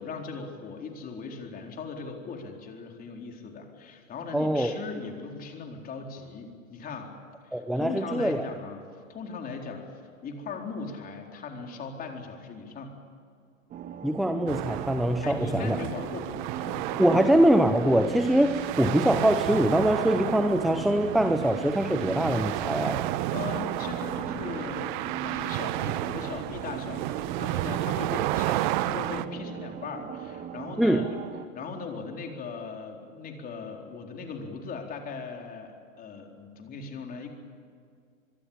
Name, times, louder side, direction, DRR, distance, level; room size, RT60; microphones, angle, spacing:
voice 1, 0.0-7.1 7.5-9.9 10.2-12.9 15.2-17.3 23.3-31.2 31.5-37.3, left 4 dB, 20° left, 2 dB, 4.2 m, -39 dB
voice 2, 4.3-4.7 7.5-8.5 14.0-15.8 17.0-23.0 30.8-31.0, right 1 dB, ahead, 8 dB, 0.6 m, -23 dB
sound 1, 13.7-31.4, right 8 dB, 20° right, 1.5 m, -39 dB
sound 2, 14.5-29.3, right 15 dB, 35° right, 0.9 m, -32 dB
25.5 x 22.0 x 8.7 m, 2.3 s
hypercardioid pair, 125°, 40 cm